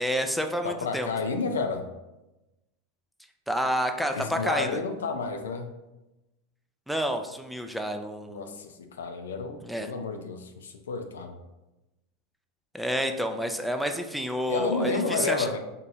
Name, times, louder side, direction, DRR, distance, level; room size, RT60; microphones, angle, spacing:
voice 1, 0.0-1.1 3.5-4.8 6.9-8.6 9.6-9.9 12.7-15.5, equal, ahead, 5 dB, 0.4 m, -29 dB
voice 2, 0.6-1.8 4.1-5.7 8.3-11.4 14.5-15.6, left 4 dB, 85° left, 6 dB, 0.5 m, -31 dB
3.5 x 2.7 x 4.1 m, 1.0 s
hypercardioid pair, 100°, 0 cm